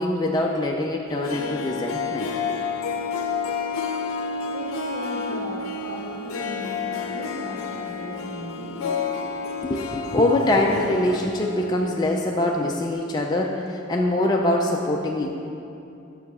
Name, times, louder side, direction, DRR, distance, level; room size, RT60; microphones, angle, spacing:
voice 1, 0.0-2.3 9.6-15.3, left 1 dB, 20° left, -1 dB, 0.4 m, -23 dB
Harp, 1.1-12.1 12.4-12.5, left 5 dB, 80° left, 0.6 m, -30 dB
voice 2, 4.4-8.9, equal, 80° right, -6 dB, 1.6 m, -36 dB
8.8 x 5.8 x 4.2 m, 2.7 s
head